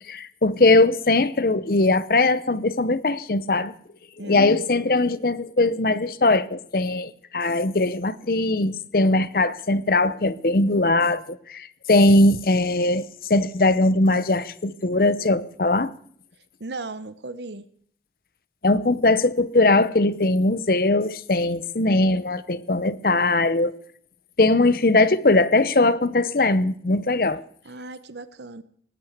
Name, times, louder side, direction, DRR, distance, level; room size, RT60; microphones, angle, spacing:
voice 1, 0.1-3.7 4.2-15.9 18.6-23.7 24.4-27.4, left 2 dB, 55° left, 0.7 m, -20 dB
voice 2, 4.2-4.6 16.6-17.7 27.6-28.6, right 2 dB, 75° right, 0.9 m, -36 dB
18.5 x 9.0 x 8.0 m
head